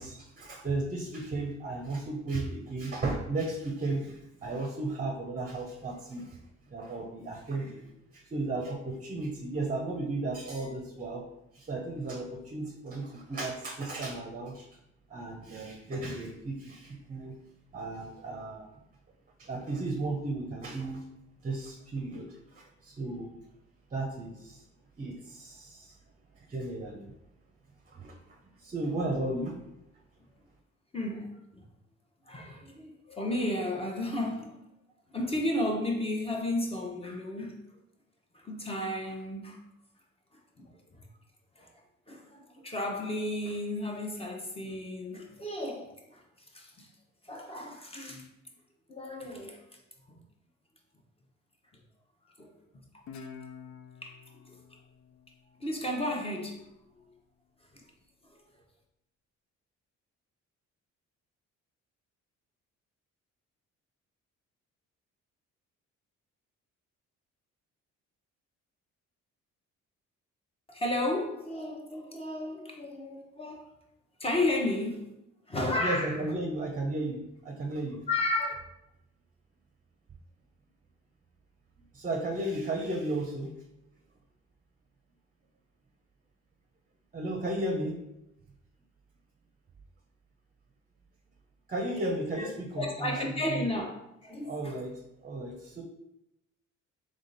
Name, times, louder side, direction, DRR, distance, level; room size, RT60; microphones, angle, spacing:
voice 1, 0.0-6.4 6.7-7.9 8.1-11.2 11.5-14.7 15.1-17.4 17.7-18.7 19.4-21.0 21.4-23.3 23.9-24.6 25.0-25.9 26.5-27.1 27.9-28.2 28.6-29.6 75.8-78.0 81.9-83.5 87.1-88.0 91.7-93.2 93.5-93.7 94.4-95.8, right 2 dB, 25° right, 0.7 m, -34 dB
voice 2, 30.9-31.6 32.3-34.6 35.1-37.7 38.4-39.6 40.6-41.1 41.6-41.7 42.1-46.2 46.5-46.9 47.2-48.3 48.9-49.6 50.1-50.2 52.4-52.5 54.0-54.2 54.5-54.6 55.6-56.7 57.7-57.8 70.7-73.7 74.2-75.1 75.5-76.3 78.1-78.5 92.4-92.5 92.8-94.0 94.2-94.8, left 1 dB, 20° left, 0.9 m, -33 dB
Guitar, 53.1-56.3, left 6 dB, 65° left, 0.5 m, -49 dB
3.6 x 3.3 x 4.0 m
cardioid pair, 90°, 30 cm